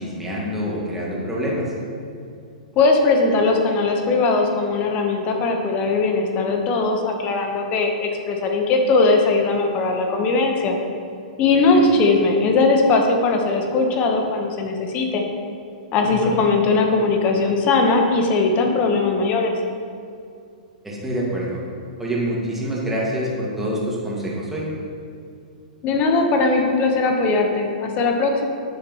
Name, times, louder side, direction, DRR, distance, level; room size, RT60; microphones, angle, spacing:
voice 1, 0.0-1.7 11.7-11.8 16.0-16.4 20.8-21.6 22.0-24.6, equal, 5° right, -5 dB, 2.0 m, -26 dB
voice 2, 2.7-10.8 11.4-15.2 15.9-19.5 25.8-28.5, left 3 dB, 35° left, 3 dB, 1.2 m, -19 dB
9.4 x 6.9 x 3.1 m, 2.4 s
hypercardioid pair, 115°, 4 cm